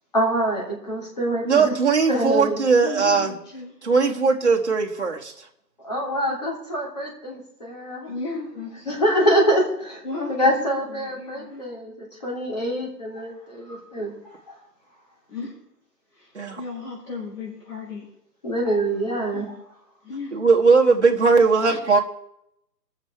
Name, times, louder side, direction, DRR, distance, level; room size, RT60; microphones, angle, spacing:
voice 1, 0.1-1.7 2.1-2.6 5.8-8.1 8.8-10.0 10.3-11.9 12.2-14.1 14.5-14.6 18.4-19.5, equal, 25° left, -3 dB, 3.1 m, -25 dB
voice 2, 1.4-3.3 3.8-5.4 16.3-16.6 20.3-22.0, right 4 dB, 40° right, 0 dB, 1.6 m, -19 dB
voice 3, 2.7-3.7 8.1-8.9 9.1-9.3 10.0-10.3 10.6-11.6 15.3-15.5 16.1-18.1 19.3-19.5 20.0-20.4, left 4 dB, 60° left, -5 dB, 5.5 m, -35 dB
21.5 x 7.4 x 4.6 m, 0.79 s
hypercardioid pair, 180°, 50 cm